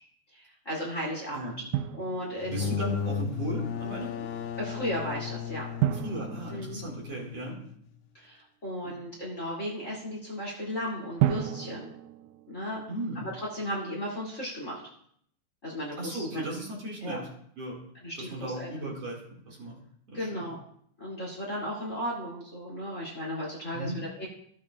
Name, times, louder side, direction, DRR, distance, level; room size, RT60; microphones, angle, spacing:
voice 1, 0.3-1.5 2.0-2.7 4.6-5.7 6.5-6.8 8.1-11.9 12.5-12.8 13.3-14.8 15.6-16.4 17.0-17.2 18.0-18.7 20.1-20.6 21.0-24.3, equal, 25° left, -4 dB, 2.6 m, -35 dB
Drum, 1.7-2.8 5.8-7.6 11.2-13.2, right 12 dB, 85° right, 2.1 m, -32 dB
sound 1, 2.4-7.9, left 7 dB, 75° left, 1.8 m, -35 dB
voice 2, 2.4-4.3 5.9-7.6 8.8-8.9 12.9-13.3 16.0-17.3 17.6-17.8 18.2-19.2 19.5-19.8 20.1-20.4 23.7-24.0, right 1 dB, 50° right, -3 dB, 3.1 m, -36 dB
15.0 x 8.6 x 2.4 m, 0.65 s
omnidirectional pair, 3.6 m